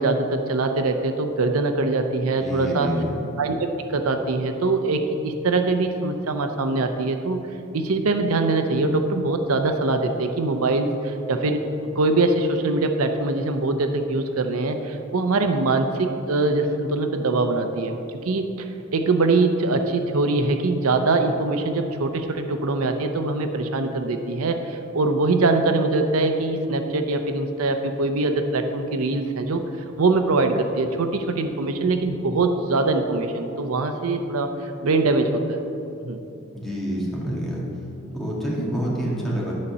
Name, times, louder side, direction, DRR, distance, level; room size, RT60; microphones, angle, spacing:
voice 1, 0.0-2.9 3.4-7.4 7.7-11.6 12.0-18.0 18.2-18.7 18.9-29.6 30.0-35.6 36.0-36.2, right 3 dB, 90° right, 6 dB, 0.6 m, -23 dB
voice 2, 2.4-3.1 36.5-37.7 38.1-39.5, equal, ahead, -6 dB, 1.8 m, -27 dB
11.0 x 4.2 x 6.7 m, 2.9 s
head